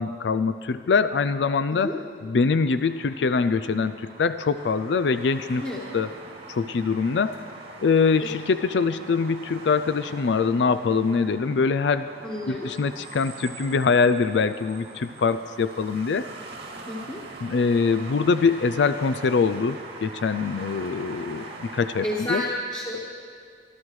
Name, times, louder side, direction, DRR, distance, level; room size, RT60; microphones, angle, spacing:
voice 1, 0.0-1.9 2.2-5.6 5.9-6.1 6.5-7.4 7.8-12.1 12.5-16.3 17.4-22.4, left 5 dB, 85° left, 11 dB, 0.4 m, -23 dB
sound 1, 2.5-22.2, right 3 dB, 75° right, 2.1 m, -42 dB
voice 2, 12.2-12.7 16.9-17.2 22.0-23.1, left 1 dB, 20° left, -5 dB, 1.4 m, -30 dB
25.0 x 13.5 x 3.2 m, 2.1 s
head